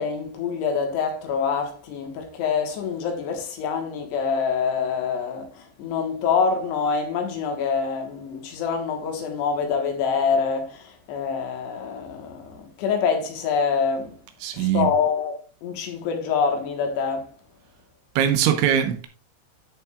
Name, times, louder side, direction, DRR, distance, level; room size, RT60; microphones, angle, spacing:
voice 1, 0.0-14.2 14.5-17.3, left 5 dB, 75° left, 3.3 m, -26 dB
voice 2, 14.4-14.9 18.2-19.1, right 9 dB, 90° right, 3.3 m, -21 dB
13.5 x 5.8 x 2.4 m
omnidirectional pair, 5.2 m